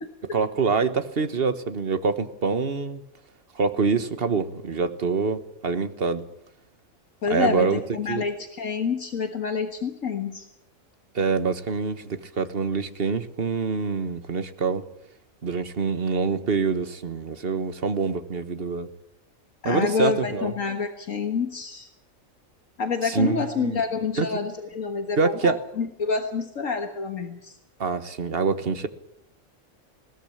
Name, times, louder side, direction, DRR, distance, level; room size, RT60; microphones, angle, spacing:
voice 1, 0.3-3.0 3.5-6.3 7.3-7.8 8.1-8.2 11.1-14.8 15.4-18.9 19.6-20.5 23.0-23.8 24.2-24.3 25.2-25.6 27.8-28.9, right 4 dB, 45° right, 10 dB, 1.5 m, -25 dB
voice 2, 7.2-10.5 19.6-21.9 22.8-27.6, left 5 dB, 65° left, 5 dB, 1.9 m, -28 dB
20.5 x 17.0 x 8.7 m, 0.79 s
omnidirectional pair, 1.5 m